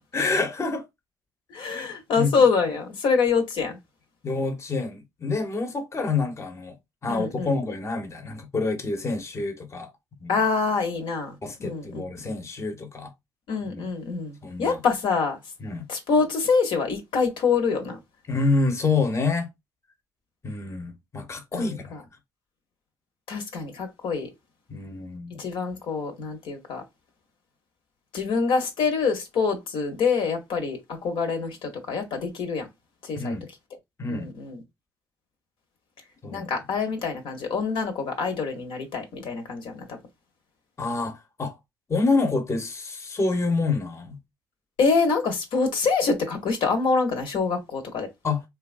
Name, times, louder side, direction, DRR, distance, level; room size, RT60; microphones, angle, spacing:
voice 1, 0.1-0.8 1.7-1.9 2.2-2.3 4.2-6.7 7.0-9.9 10.2-10.4 11.4-13.1 13.6-13.8 14.4-14.8 15.6-15.9 18.3-19.5 20.4-21.9 24.7-25.4 33.2-33.4 34.0-34.3 36.2-36.5 40.8-41.6 41.9-44.2 48.2-48.4, left 3 dB, 30° left, 0.8 m, -27 dB
voice 2, 1.5-3.8 7.1-7.5 10.3-11.3 11.6-12.4 13.5-15.4 15.9-18.0 21.5-22.0 23.3-24.3 25.4-26.8 28.1-32.7 33.0-33.4 34.1-34.6 36.3-40.0 44.8-48.1, left 5 dB, 75° left, 0.9 m, -25 dB
2.8 x 2.3 x 2.5 m
supercardioid pair, 70°, 9 cm